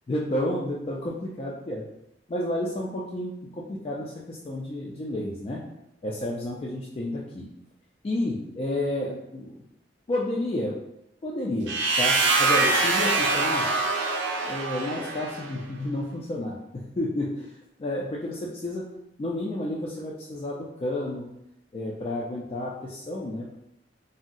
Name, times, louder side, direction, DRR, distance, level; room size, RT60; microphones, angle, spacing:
voice 1, 0.1-1.9 2.3-5.7 6.0-7.4 8.0-9.6 10.1-10.8 11.2-13.7 14.4-17.5 17.8-18.9 19.2-21.4 21.7-23.6, left 1 dB, 30° left, -4 dB, 0.3 m, -31 dB
sound 1, 11.7-15.5, right 3 dB, 85° right, 0.5 m, -24 dB
2.6 x 2.0 x 3.7 m, 0.82 s
head